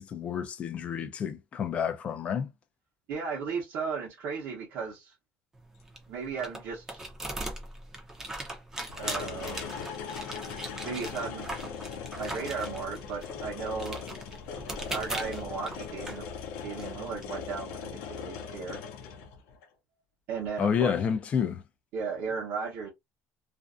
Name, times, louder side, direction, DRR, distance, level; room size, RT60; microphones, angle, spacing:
voice 1, 0.0-2.5 20.6-21.6, left 7 dB, 35° left, 0.5 m, -29 dB
voice 2, 3.1-5.1 6.1-7.0 9.0-10.1 10.8-11.5 12.2-14.0 14.9-16.3 16.6-18.8 20.3-21.0 21.9-22.9, right 5 dB, 65° right, 0.8 m, -35 dB
sound 1, 5.5-17.3, right 1 dB, 10° right, 0.6 m, -40 dB
sound 2, 8.9-19.6 20.7-20.8, left 6 dB, 80° left, 0.6 m, -40 dB
2.5 x 2.2 x 2.5 m
cardioid pair, 160°, 4 cm